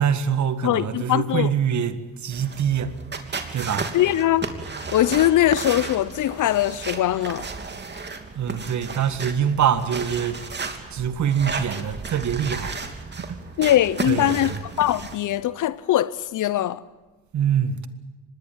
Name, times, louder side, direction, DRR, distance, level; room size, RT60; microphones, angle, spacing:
voice 1, 0.0-2.9 3.5-3.9 8.3-10.4 10.9-12.7 13.1-13.4 14.0-14.6 17.3-17.9, right 8 dB, 50° right, 1.8 m, -24 dB
voice 2, 0.6-1.5 3.9-4.5 4.9-7.5 13.6-16.8, left 13 dB, 55° left, 0.9 m, -21 dB
sound 1, 2.3-15.2, right 4 dB, 30° right, 3.0 m, -34 dB
25.0 x 20.0 x 7.5 m
supercardioid pair, 70°, 37 cm